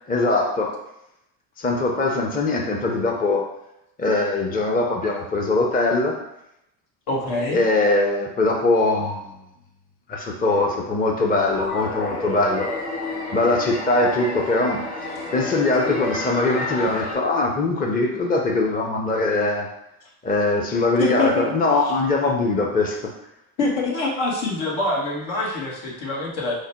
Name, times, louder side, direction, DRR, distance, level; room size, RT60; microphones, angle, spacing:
voice 1, 0.1-0.8 1.6-3.5 4.0-6.2 7.5-9.3 10.1-12.7 13.3-19.7 20.2-23.1, left 2 dB, 20° left, 1 dB, 0.6 m, -22 dB
voice 2, 7.1-7.6 21.0-21.5 21.8-21.9 23.6-26.5, left 2 dB, 70° left, -2 dB, 1.4 m, -25 dB
sound 1, 11.4-17.1, left 2 dB, 90° left, 1.6 m, -30 dB
4.8 x 2.1 x 4.3 m, 0.84 s
supercardioid pair, 85°, 48 cm